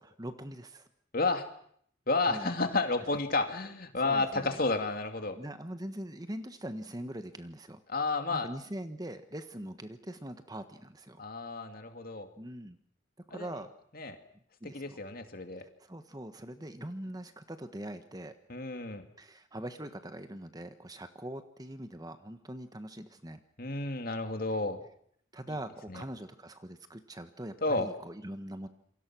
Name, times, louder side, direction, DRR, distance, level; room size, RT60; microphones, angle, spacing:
voice 1, 0.0-0.9 2.2-2.5 3.1-3.2 4.0-4.6 5.3-7.8 8.3-11.2 12.4-12.8 13.3-13.7 14.6-15.0 15.6-18.3 19.2-23.4 25.3-28.7, right 1 dB, 20° right, 9 dB, 1.4 m, -42 dB
voice 2, 1.1-1.5 2.1-5.4 7.9-8.5 11.2-12.3 13.3-13.5 13.9-14.2 14.7-15.7 18.5-19.0 23.6-24.8 25.9-26.0 27.6-27.9, left 3 dB, 50° left, 6 dB, 2.6 m, -31 dB
28.0 x 24.0 x 6.2 m, 0.65 s
head